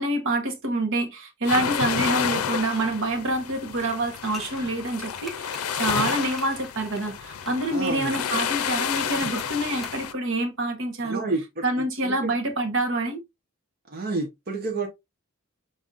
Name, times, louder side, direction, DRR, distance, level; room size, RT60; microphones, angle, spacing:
voice 1, 0.0-11.2 11.6-13.2, right 2 dB, 65° right, 1.2 m, -27 dB
sound 1, 1.4-10.1, left 8 dB, 85° left, 0.5 m, -30 dB
sound 2, 3.8-7.6 8.1-8.4 9.4-10.1 10.3-10.4, left 1 dB, ahead, 1.0 m, -42 dB
voice 2, 7.7-8.1 11.0-11.6 12.0-12.3 13.9-14.9, right 3 dB, 45° right, 1.0 m, -29 dB
5.4 x 3.9 x 2.5 m
head